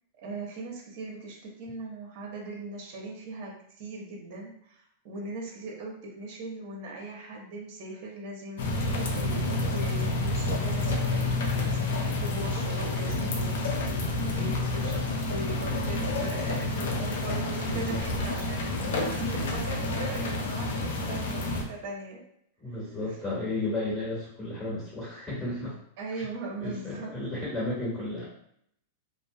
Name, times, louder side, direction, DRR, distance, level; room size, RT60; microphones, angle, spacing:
voice 1, 0.2-13.8 14.3-22.2 23.1-23.2 26.0-27.1, right 2 dB, 55° right, -1 dB, 0.8 m, -39 dB
sound 1, 8.6-21.6, left 2 dB, 70° left, 0.4 m, -29 dB
voice 2, 22.6-25.8 26.1-26.3 26.6-28.3, left 2 dB, 10° left, -8 dB, 1.4 m, -33 dB
2.3 x 2.0 x 2.6 m, 0.70 s
hypercardioid pair, 110°, 0 cm